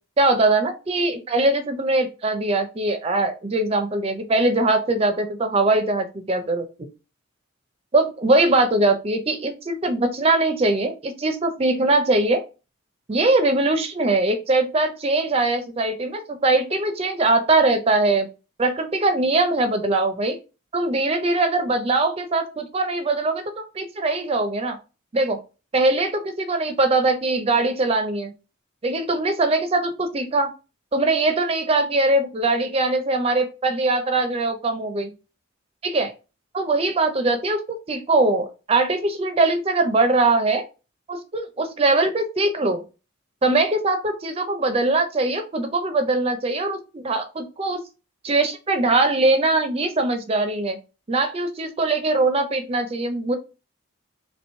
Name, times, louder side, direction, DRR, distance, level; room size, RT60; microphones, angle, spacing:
voice 1, 0.2-6.9 7.9-12.4 13.1-18.3 18.6-20.4 20.7-24.8 25.1-25.4 25.7-28.3 28.8-30.5 30.9-35.1 35.8-36.1 36.5-37.6 37.9-40.6 41.1-42.8 43.4-47.8 48.2-50.8 51.1-53.3, right 2 dB, 30° right, 7 dB, 0.5 m, -21 dB
3.0 x 3.0 x 4.2 m, 0.31 s
head